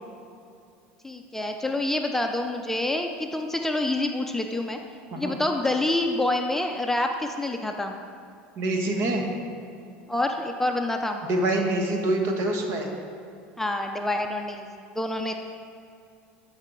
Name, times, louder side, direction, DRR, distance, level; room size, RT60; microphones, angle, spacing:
voice 1, 1.0-4.8 5.2-8.0 10.1-11.2 13.6-15.3, left 2 dB, 5° left, 3 dB, 0.6 m, -27 dB
voice 2, 8.6-9.2 11.3-12.9, right 1 dB, 55° right, 2 dB, 1.4 m, -25 dB
11.5 x 5.6 x 3.8 m, 2.5 s
hypercardioid pair, 95°, 5 cm